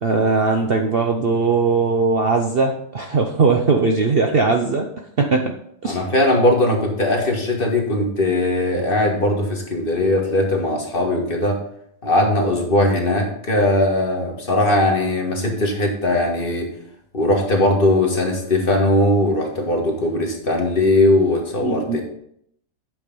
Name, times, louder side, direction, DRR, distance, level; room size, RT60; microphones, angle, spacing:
voice 1, 0.0-4.9 5.2-5.6 5.8-6.0 21.6-22.0, right 4 dB, 85° right, 3 dB, 0.5 m, -19 dB
voice 2, 5.8-11.6 12.0-16.7 17.1-22.0, left 1 dB, 30° left, 0 dB, 1.7 m, -19 dB
8.3 x 6.1 x 5.3 m, 0.70 s
omnidirectional pair, 2.1 m